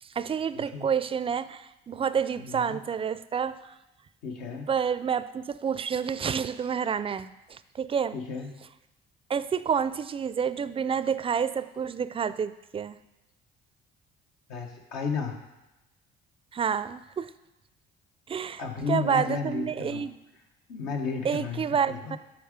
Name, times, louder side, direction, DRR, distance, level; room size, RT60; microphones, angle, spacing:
voice 1, 0.0-3.7 4.7-8.2 9.3-13.0 16.5-17.3 18.3-18.6 18.9-20.1 21.2-22.2, right 7 dB, 25° right, 15 dB, 0.4 m, -29 dB
voice 2, 0.5-0.9 2.4-2.8 4.2-4.7 8.1-8.5 14.5-15.4 18.6-20.0 20.7-22.2, left 5 dB, 85° left, 2 dB, 1.1 m, -33 dB
7.9 x 4.1 x 5.0 m, 0.97 s
supercardioid pair, 70°, 21 cm